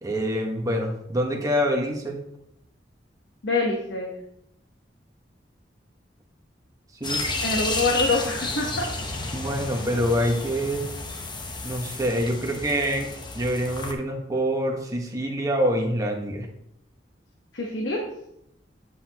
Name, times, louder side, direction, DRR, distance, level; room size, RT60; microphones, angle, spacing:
voice 1, 0.0-2.2 7.0-7.2 9.3-10.8 11.6-13.1 13.3-16.5, equal, 20° right, 1 dB, 1.3 m, -26 dB
voice 2, 3.4-4.2 7.4-8.9 17.5-18.0, left 3 dB, 75° left, 0 dB, 1.1 m, -25 dB
sound 1, 7.0-13.9, left 2 dB, 25° left, 0.9 m, -31 dB
8.3 x 7.7 x 2.9 m, 0.79 s
head